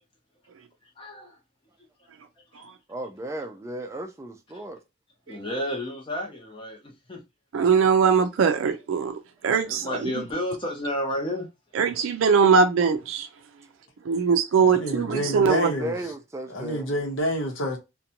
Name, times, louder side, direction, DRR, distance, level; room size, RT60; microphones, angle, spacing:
voice 1, 0.8-1.4 2.4-2.7 5.3-7.2 9.6-11.5, left 1 dB, 25° left, 0.6 m, -32 dB
voice 2, 2.9-4.8 15.0-16.9, right 1 dB, 15° right, 0.3 m, -35 dB
voice 3, 7.5-9.1 9.4-10.2 11.7-13.3 14.0-15.7, right 6 dB, 90° right, 0.4 m, -21 dB
voice 4, 14.6-16.0 16.5-17.8, equal, 80° left, 0.8 m, -28 dB
2.6 x 2.2 x 2.7 m
head